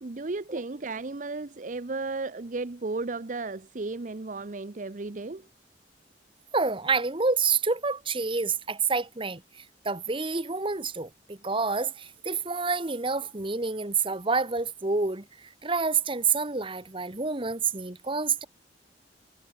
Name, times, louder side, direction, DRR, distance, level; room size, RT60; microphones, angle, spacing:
voice 1, 0.0-5.5, right 3 dB, 45° right, 0.7 m, -34 dB
voice 2, 6.5-18.5, right 4 dB, 30° right, 1.5 m, -28 dB
head